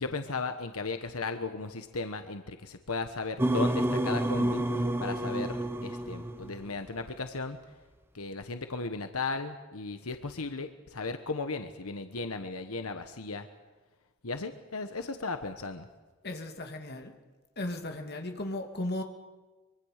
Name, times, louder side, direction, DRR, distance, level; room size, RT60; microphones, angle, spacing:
voice 1, 0.0-7.6 8.1-13.5 14.2-15.9, left 3 dB, 80° left, 7 dB, 1.3 m, -36 dB
sound 1, 3.4-6.7, right 1 dB, 10° right, 0.9 m, -29 dB
voice 2, 16.2-17.2 17.6-19.0, left 1 dB, 45° left, 4 dB, 2.5 m, -36 dB
24.5 x 23.5 x 6.6 m, 1.3 s
head